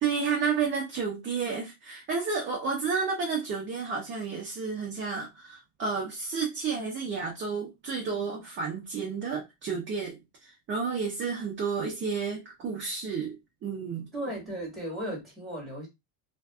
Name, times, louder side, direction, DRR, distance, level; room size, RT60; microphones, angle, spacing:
voice 1, 0.0-14.1, right 5 dB, 25° right, 0.6 m, -31 dB
voice 2, 14.1-15.9, right 1 dB, ahead, 1.4 m, -35 dB
2.5 x 2.5 x 2.3 m
cardioid pair, 140°, 47 cm